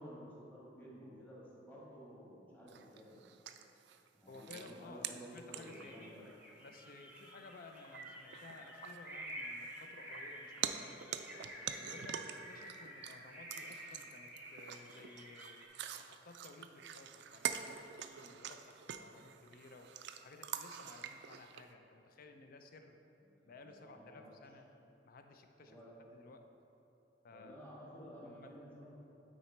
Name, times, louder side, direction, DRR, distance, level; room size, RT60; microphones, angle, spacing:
voice 1, 0.0-3.2 4.1-6.2 23.3-24.3 25.6-25.9 27.3-29.0, equal, 10° left, -7 dB, 1.5 m, -53 dB
sound 1, 2.7-6.1 6.7-6.8 7.2-7.3 7.7-8.0 8.3-10.3 10.6-13.2 13.5-21.6, right 9 dB, 65° right, 0.3 m, -45 dB
voice 2, 4.3-6.1 6.6-11.2 11.8-15.6 16.0-19.9 20.2-23.0 23.5-24.7 25.0-25.8 26.1-26.5 27.2-27.6 28.2-28.6, left 3 dB, 50° left, 6 dB, 0.5 m, -56 dB
sound 2, 5.7-15.7, right 1 dB, 10° right, 0.8 m, -50 dB
9.0 x 4.1 x 4.3 m, 2.9 s
head